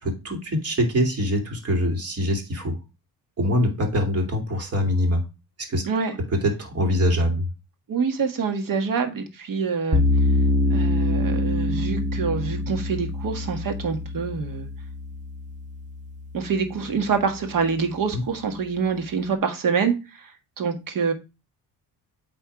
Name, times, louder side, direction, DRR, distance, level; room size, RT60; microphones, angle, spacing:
voice 1, 0.0-2.8 3.4-5.2 5.7-5.8 6.4-7.5 18.1-18.2, equal, 35° right, 3 dB, 2.5 m, -23 dB
voice 2, 7.9-10.0 10.7-14.7 16.3-21.1, right 5 dB, 55° right, 6 dB, 1.6 m, -26 dB
sound 1, 9.9-17.0, left 2 dB, 20° right, 1.2 m, -25 dB
8.7 x 3.5 x 4.7 m, 0.28 s
cardioid pair, 120°, 40 cm